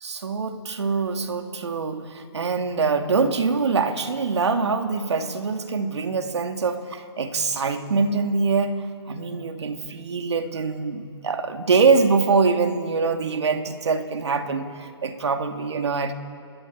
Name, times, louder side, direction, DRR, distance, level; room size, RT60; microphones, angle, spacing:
voice 1, 0.0-8.7 9.1-16.1, right 4 dB, 70° right, 6 dB, 2.5 m, -24 dB
27.5 x 21.0 x 8.7 m, 2.6 s
hypercardioid pair, 165°, 15 cm